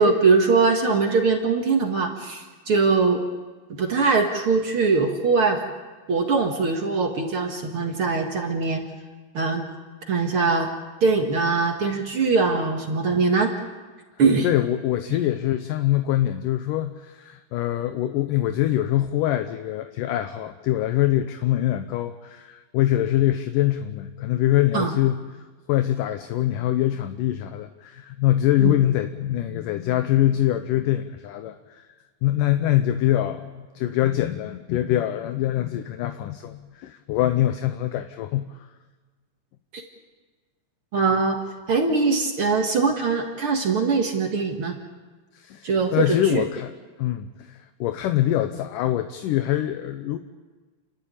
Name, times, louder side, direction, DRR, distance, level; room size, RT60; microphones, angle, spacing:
voice 1, 0.0-3.2 3.7-5.6 6.1-8.8 9.3-9.6 10.1-10.7 11.0-13.5 14.2-14.5 15.1-15.2 24.7-24.9 28.6-28.7 39.7-39.8 40.9-41.4 41.7-44.7 45.6-46.4, right 4 dB, 50° right, 2 dB, 1.9 m, -22 dB
voice 2, 14.4-25.3 25.7-31.8 32.2-38.7 45.3-46.7 47.0-50.2, left 13 dB, 75° left, 9 dB, 2.1 m, -24 dB
29.5 x 12.5 x 8.8 m, 1.4 s
omnidirectional pair, 4.3 m